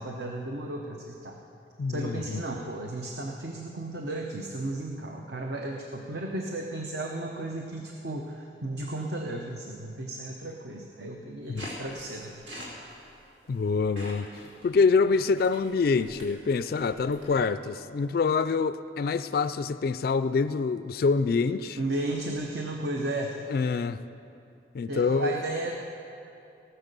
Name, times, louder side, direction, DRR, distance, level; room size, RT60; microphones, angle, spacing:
voice 1, 0.0-1.4 1.9-12.3 21.8-23.4 24.9-25.8, right 2 dB, 65° right, 1 dB, 0.8 m, -34 dB
voice 2, 1.8-2.4 11.5-11.7 13.5-14.3 14.6-21.8 23.5-24.0 24.7-25.3, left 4 dB, 55° left, 13 dB, 0.3 m, -26 dB
sound 1, 11.6-17.4, equal, 90° right, 2.9 m, -45 dB
18.5 x 6.6 x 6.7 m, 2.7 s
head